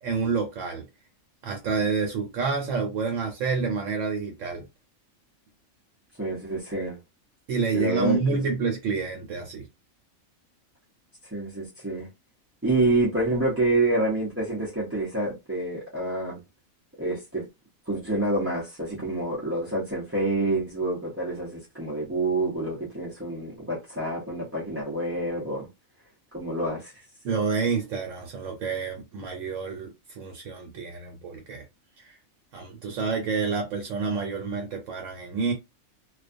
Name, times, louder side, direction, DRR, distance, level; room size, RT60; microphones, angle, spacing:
voice 1, 0.0-0.8 1.4-4.6 7.5-9.6 27.2-31.6 32.0-32.2 32.5-35.5, right 5 dB, 70° right, 1.0 m, -28 dB
voice 2, 6.2-7.0 7.7-8.2 11.3-12.1 12.6-16.4 17.0-17.5 17.9-25.7 26.3-26.9, right 2 dB, 20° right, 0.4 m, -27 dB
2.4 x 2.3 x 2.5 m
omnidirectional pair, 1.4 m